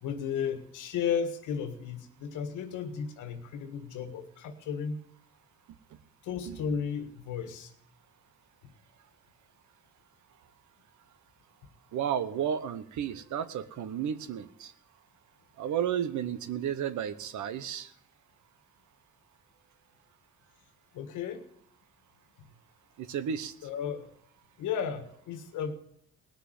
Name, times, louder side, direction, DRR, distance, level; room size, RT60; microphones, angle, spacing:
voice 1, 0.0-5.0 6.2-7.7 20.9-21.4 22.4-22.5 23.6-24.1 24.6-25.7, left 7 dB, 90° left, 8 dB, 1.6 m, -34 dB
voice 2, 11.9-14.7 15.6-17.9 23.0-23.5, right 9 dB, 75° right, 13 dB, 1.1 m, -32 dB
19.0 x 6.7 x 7.7 m, 0.71 s
cardioid pair, 90°, 30 cm